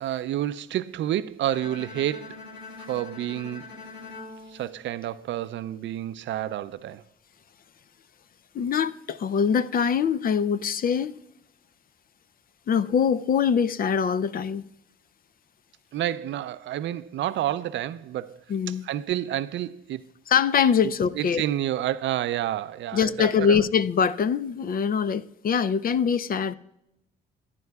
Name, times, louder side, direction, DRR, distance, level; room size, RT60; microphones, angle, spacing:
voice 1, 0.0-2.4 2.8-3.7 4.5-7.0 15.9-18.4 18.7-20.1 21.2-23.6, right 12 dB, 70° right, 0.4 m, -29 dB
Bowed string instrument, 1.4-5.6, left 3 dB, 70° left, 2.0 m, -43 dB
voice 2, 8.5-11.2 12.7-14.6 18.5-18.8 20.3-21.4 22.9-26.5, left 7 dB, 45° left, 0.5 m, -23 dB
15.5 x 10.5 x 2.3 m
cardioid pair, 90°, 20 cm